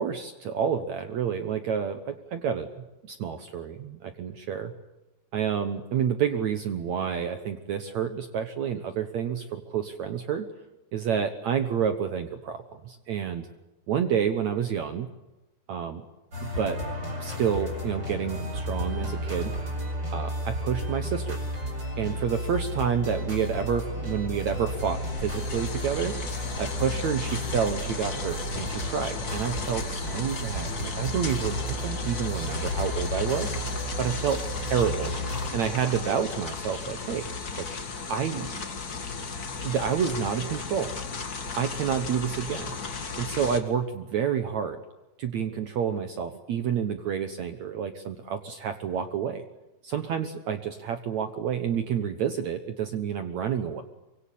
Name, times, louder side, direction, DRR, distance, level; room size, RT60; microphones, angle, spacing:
voice 1, 0.0-2.7 3.0-4.7 5.3-10.5 10.9-13.5 13.9-15.1 15.7-16.0 16.4-16.8 17.2-19.5 20.1-21.4 22.0-26.1 26.6-33.6 34.0-35.1 35.5-37.3 37.6-37.7 38.1-38.7 39.6-40.9 41.6-42.7 43.2-44.8 45.2-49.4 49.8-53.8, right 7 dB, 75° right, 8 dB, 1.6 m, -29 dB
sound 1, 16.3-35.5, equal, 25° right, 8.1 m, -33 dB
sound 2, 24.4-43.6, left 4 dB, 40° left, 1.3 m, -35 dB
25.0 x 24.0 x 8.5 m, 1.0 s
omnidirectional pair, 5.0 m